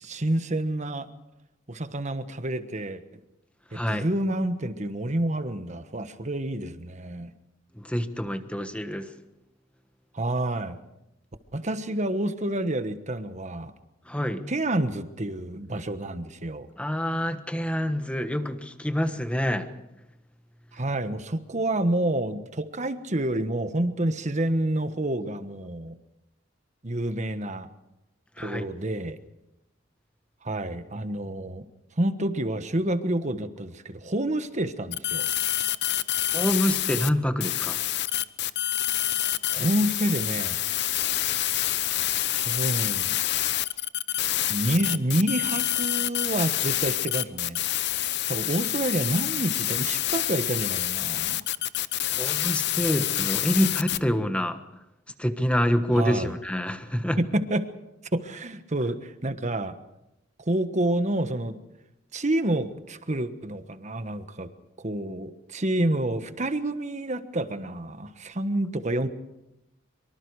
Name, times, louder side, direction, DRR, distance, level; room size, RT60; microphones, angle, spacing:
voice 1, 0.0-1.1 1.7-3.0 3.7-7.3 10.1-10.8 11.5-13.7 14.5-16.7 20.7-26.0 26.8-27.7 28.4-29.2 30.4-31.6 32.0-35.3 39.5-40.6 42.3-43.2 44.1-44.2 44.5-47.6 48.3-51.4 55.9-56.3 57.2-57.7 58.1-59.8 60.5-61.5 62.1-64.5 64.8-69.1, right 1 dB, 40° right, 10 dB, 1.3 m, -28 dB
voice 2, 3.7-4.1 7.7-9.2 14.1-14.4 16.8-19.7 28.4-28.7 36.3-37.8 52.1-54.6 55.2-57.2, equal, 5° left, 8 dB, 1.3 m, -27 dB
sound 1, 34.9-37.1 37.4-54.0, left 13 dB, 60° left, 0.8 m, -27 dB
24.5 x 24.5 x 4.9 m, 0.89 s
head